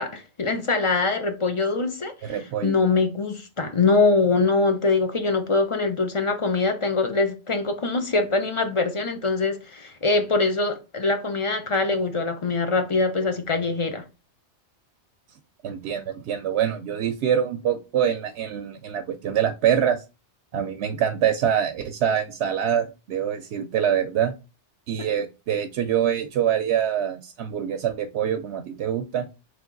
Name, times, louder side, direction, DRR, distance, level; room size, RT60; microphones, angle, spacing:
voice 1, 0.0-14.0 25.0-25.1, left 3 dB, 35° left, 0.6 m, -23 dB
voice 2, 2.2-2.7 15.6-20.0 20.5-24.3 24.9-29.3, right 9 dB, 70° right, 0.8 m, -25 dB
3.4 x 3.3 x 3.8 m
omnidirectional pair, 1.2 m